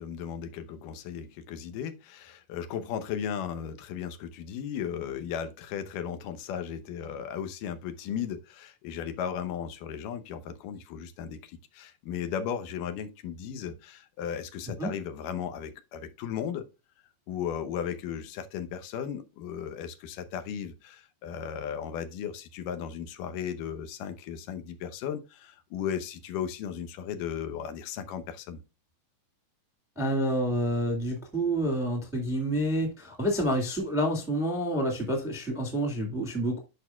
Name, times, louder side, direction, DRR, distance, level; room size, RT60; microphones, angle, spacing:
voice 1, 0.0-16.7 17.3-28.6, left 8 dB, 85° left, 2.5 m, -36 dB
voice 2, 29.9-36.6, right 1 dB, ahead, 0.9 m, -28 dB
11.0 x 4.9 x 2.3 m
omnidirectional pair, 3.7 m